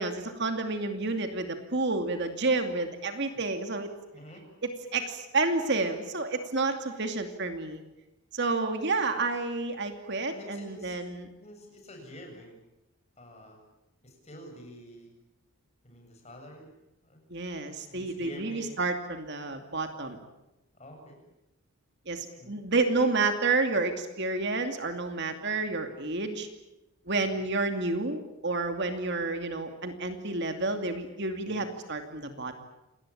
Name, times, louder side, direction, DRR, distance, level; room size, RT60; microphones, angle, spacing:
voice 1, 0.0-3.9 4.6-7.8 8.3-11.3 17.3-20.2 22.1-26.5 27.1-32.6, right 3 dB, 50° right, 6 dB, 2.5 m, -30 dB
voice 2, 4.1-4.4 10.3-10.9 11.4-12.6 13.2-13.6 14.0-15.2 15.8-16.7 17.0-17.2 17.9-18.8 20.7-21.2 22.3-22.6 27.2-27.4 31.5-31.6, equal, 30° left, 2 dB, 7.6 m, -47 dB
27.5 x 20.0 x 8.7 m, 0.94 s
head